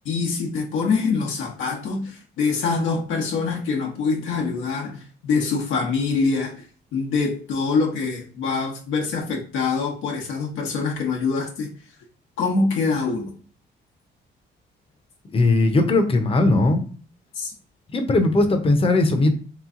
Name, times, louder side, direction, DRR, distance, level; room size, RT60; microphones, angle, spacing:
voice 1, 0.0-6.7 6.9-11.7 12.4-13.3 17.3-17.5, left 4 dB, 85° left, 1.0 m, -24 dB
voice 2, 15.3-16.8 17.9-19.3, left 2 dB, 30° left, 0.7 m, -18 dB
3.4 x 3.0 x 3.7 m
cardioid pair, 90°, 20 cm